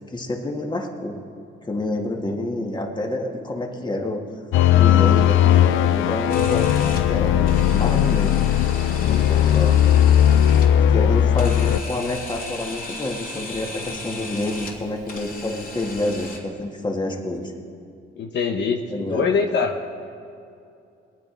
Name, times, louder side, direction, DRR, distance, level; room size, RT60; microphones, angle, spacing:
voice 1, 0.1-1.2 1.6-4.2 4.7-6.7 7.1-8.4 9.0-9.8 10.9-17.5 18.9-19.3, left 2 dB, 20° left, 2 dB, 2.0 m, -28 dB
sound 1, 4.5-11.8, left 10 dB, 90° left, 0.5 m, -17 dB
Camera, 6.3-16.4, left 2 dB, 45° left, 3.2 m, -37 dB
voice 2, 18.2-19.7, left 5 dB, 60° left, 3 dB, 1.1 m, -23 dB
22.0 x 9.4 x 5.3 m, 2.6 s
cardioid pair, 90°, 20 cm